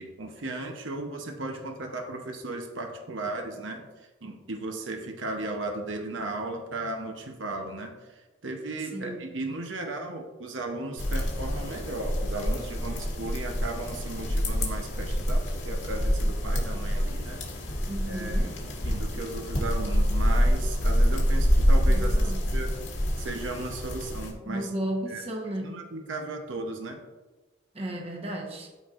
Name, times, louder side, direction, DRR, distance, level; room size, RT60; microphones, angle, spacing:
voice 1, 0.0-8.1 8.4-17.4 18.0-18.5 18.8-22.7 23.2-24.7 25.1-25.2 25.6-27.0, right 2 dB, 80° right, 3 dB, 0.9 m, -36 dB
voice 2, 8.9-9.3 17.9-18.6 21.9-22.5 24.5-25.8 27.7-28.7, right 1 dB, 30° right, 0 dB, 1.0 m, -34 dB
sound 1, 11.0-24.3, equal, 85° left, 1.7 m, -26 dB
13.0 x 4.3 x 2.5 m, 1.2 s
head